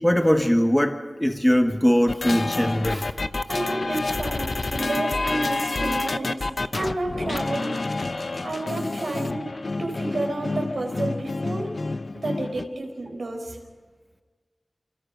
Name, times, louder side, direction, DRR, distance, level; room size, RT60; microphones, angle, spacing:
voice 1, 0.0-3.1, equal, 5° left, 1.3 m, -21 dB
sound 1, 2.1-12.7, left 3 dB, 65° left, 0.8 m, -28 dB
voice 2, 3.5-6.4 6.7-7.7 8.4-9.5 9.8-11.7 12.1-13.6, right 2 dB, 85° right, 4.7 m, -30 dB
28.5 x 26.0 x 5.3 m
wide cardioid pair, 65°, 0 cm